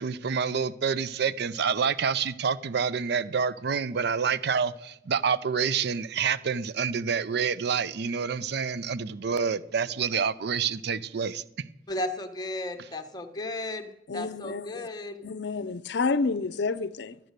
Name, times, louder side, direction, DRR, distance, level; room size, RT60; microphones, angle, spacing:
voice 1, 0.0-11.4, right 6 dB, 65° right, 0.5 m, -28 dB
voice 2, 11.9-15.2, left 1 dB, 25° left, 1.1 m, -34 dB
voice 3, 14.1-14.9 15.2-17.2, left 4 dB, 65° left, 0.5 m, -29 dB
12.5 x 9.1 x 6.6 m
head